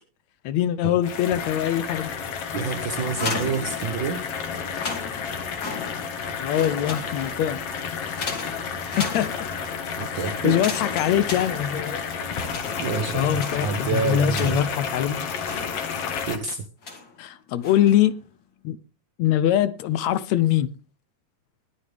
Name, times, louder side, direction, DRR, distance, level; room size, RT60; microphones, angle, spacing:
voice 1, 0.5-2.1 6.4-7.6 9.0-9.5 10.1-12.0 13.1-15.3 17.2-18.1 18.6-18.8 19.2-20.7, left 11 dB, 75° left, 1.9 m, -23 dB
sound 1, 1.0-16.4, left 6 dB, 55° left, 2.4 m, -31 dB
voice 2, 2.5-4.2 10.0-10.6 12.8-14.6 16.3-16.6, right 5 dB, 55° right, 1.3 m, -28 dB
sound 2, 3.0-4.2 4.6-6.2 6.5-7.5 8.2-9.7 10.4-12.1 12.4-14.9 15.4-16.2 16.8-17.2 17.6-18.1, left 4 dB, 40° left, 3.0 m, -35 dB
20.5 x 8.4 x 3.4 m
omnidirectional pair, 3.4 m